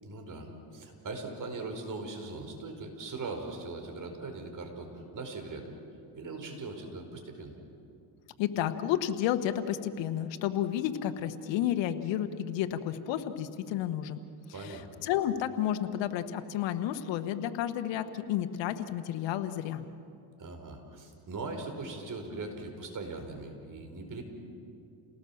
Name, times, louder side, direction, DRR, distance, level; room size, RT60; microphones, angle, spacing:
voice 1, 0.0-5.7 6.1-7.6 14.5-14.9 20.4-24.2, right 3 dB, 45° right, 4 dB, 4.9 m, -40 dB
voice 2, 8.4-14.2 14.5-19.8, left 11 dB, 80° left, 9 dB, 1.4 m, -31 dB
29.0 x 18.5 x 7.3 m, 2.5 s
supercardioid pair, 90°, 43 cm